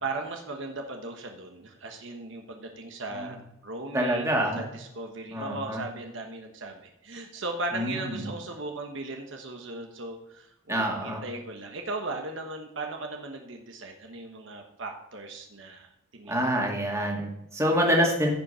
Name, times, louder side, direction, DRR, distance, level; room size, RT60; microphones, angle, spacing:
voice 1, 0.0-16.7, right 2 dB, 60° right, 3 dB, 1.2 m, -37 dB
voice 2, 3.9-4.6 5.3-5.8 7.7-8.2 10.7-11.2 16.3-18.3, equal, 15° right, -1 dB, 2.1 m, -26 dB
15.0 x 5.4 x 5.6 m, 0.87 s
head